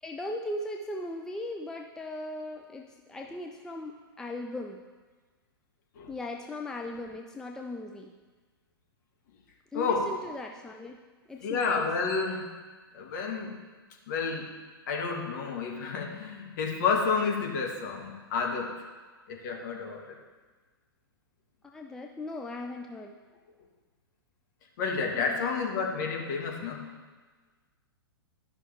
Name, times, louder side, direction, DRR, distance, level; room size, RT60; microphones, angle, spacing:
voice 1, 0.0-4.8 6.1-8.1 9.7-11.0 11.3-11.9 21.7-23.2 25.1-25.7, left 1 dB, 5° left, 1 dB, 0.4 m, -38 dB
voice 2, 9.7-10.1 11.4-12.5 12.9-13.6 14.1-14.5 14.9-18.8 19.3-20.2 24.8-26.9, left 5 dB, 50° left, 0 dB, 1.5 m, -30 dB
12.5 x 5.6 x 3.3 m, 1.3 s
figure-of-eight pair, 110°, 13 cm